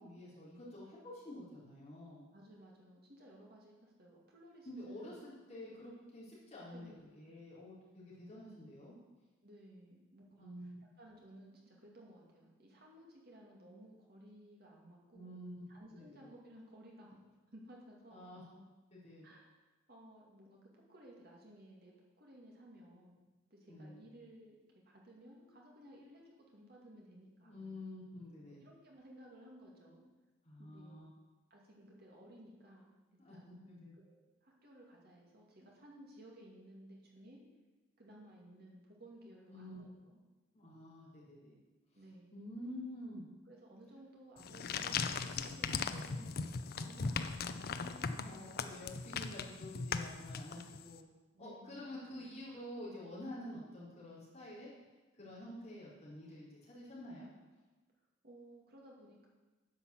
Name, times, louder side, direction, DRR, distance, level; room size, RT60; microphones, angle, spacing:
voice 1, 0.0-2.2 4.6-9.0 10.4-10.9 15.1-15.6 16.0-16.3 18.1-18.6 18.9-19.3 23.7-24.0 27.4-28.7 30.4-31.1 33.2-33.9 39.5-39.8 40.5-41.6 42.3-43.2 48.1-51.0 51.4-54.7 55.2-57.3, left 1 dB, 35° left, -8 dB, 4.1 m, -49 dB
voice 2, 2.3-5.2 5.6-5.7 6.7-7.1 9.4-10.7 11.0-15.4 15.7-17.2 17.5-18.2 19.2-19.5 19.9-23.2 23.5-27.8 28.5-30.0 30.6-31.0 31.5-32.9 33.3-33.6 34.0-37.4 38.0-40.2 41.9-42.4 43.5-48.1 51.3-51.8 52.1-52.4 58.2-59.3, right 1 dB, 50° right, -2 dB, 2.4 m, -57 dB
sound 1, 44.4-50.9, left 5 dB, 50° left, 0.5 m, -39 dB
10.0 x 5.7 x 7.2 m, 1.2 s
head